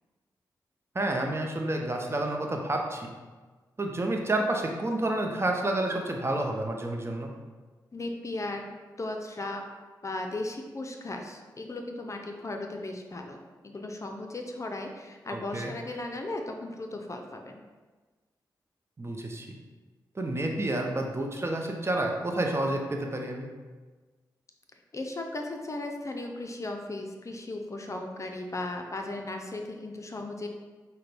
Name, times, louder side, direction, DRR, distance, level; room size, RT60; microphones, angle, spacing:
voice 1, 0.9-3.1 3.8-7.3 15.3-15.7 19.0-19.5 20.1-23.5, right 1 dB, 30° right, 2 dB, 0.7 m, -29 dB
voice 2, 7.9-9.6 10.0-13.4 13.6-17.6 24.9-30.5, left 2 dB, 40° left, 3 dB, 0.5 m, -36 dB
5.6 x 2.2 x 3.4 m, 1.3 s
supercardioid pair, 40°, 8 cm